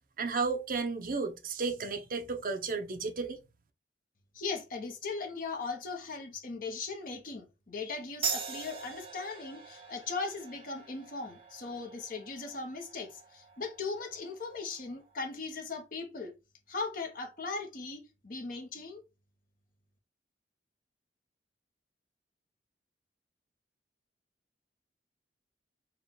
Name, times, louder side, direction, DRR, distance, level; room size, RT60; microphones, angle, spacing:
voice 1, 0.2-3.4, right 4 dB, 50° right, 0.7 m, -33 dB
voice 2, 4.3-16.3 16.7-19.0, left 4 dB, 50° left, 0.9 m, -38 dB
sound 1, 8.2-15.3, right 6 dB, 30° right, 1.2 m, -42 dB
4.5 x 2.3 x 3.8 m
head